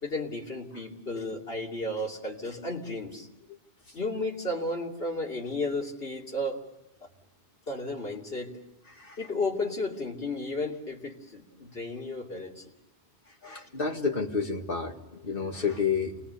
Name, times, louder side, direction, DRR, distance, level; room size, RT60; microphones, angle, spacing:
voice 1, 0.0-3.3 3.9-6.6 7.7-8.6 9.2-12.7, left 2 dB, 75° left, -1 dB, 3.2 m, -33 dB
voice 2, 13.4-16.2, left 5 dB, 60° left, 2 dB, 2.3 m, -30 dB
28.5 x 20.0 x 6.9 m, 0.95 s
omnidirectional pair, 1.0 m